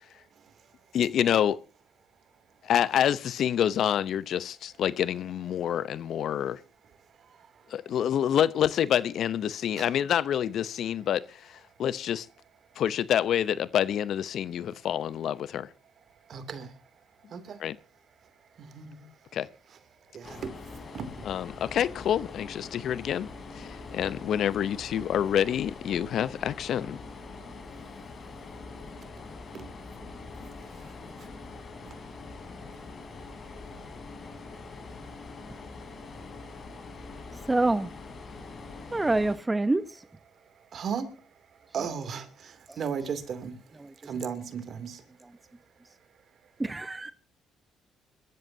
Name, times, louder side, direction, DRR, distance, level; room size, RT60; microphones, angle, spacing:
voice 1, 0.2-0.8 7.2-7.7 9.8-9.9 16.1-16.8 17.3-17.6 18.2-19.4 20.1-21.3 23.7-24.0 27.4-32.0 32.2-37.5 38.3-38.9 40.3-45.1, right 6 dB, 55° right, 2.7 m, -41 dB
voice 2, 0.9-1.6 2.6-6.6 7.7-12.3 12.8-15.7 17.6-17.8 19.0-19.5 21.3-23.3 23.5-27.0, left 10 dB, 65° left, 0.7 m, -27 dB
sound 1, 20.2-39.4, left 3 dB, 45° left, 3.5 m, -43 dB
voice 3, 37.5-37.9 38.9-40.0 41.8-42.0 46.6-47.1, right 2 dB, 15° right, 0.8 m, -26 dB
25.5 x 13.5 x 2.7 m
supercardioid pair, 75°, 0 cm